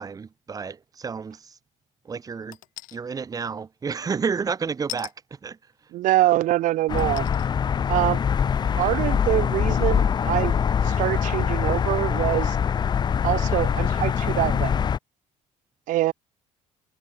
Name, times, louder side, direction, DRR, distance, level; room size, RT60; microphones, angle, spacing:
voice 1, 0.0-1.6 2.0-2.6 2.9-5.6, right 5 dB, 25° right, 2.5 m, -31 dB
sound 1, 2.5-3.0 4.9-5.1 6.1-6.2 7.0-7.5 8.0-8.1, left 19 dB, 90° left, 3.4 m, -38 dB
voice 2, 5.9-7.3 7.9-8.2 8.8-12.6 13.2-14.7 15.9-16.1, right 16 dB, 75° right, 3.6 m, -24 dB
sound 2, 6.9-15.0, left 7 dB, 35° left, 0.8 m, -23 dB
cardioid pair, 130°, 13 cm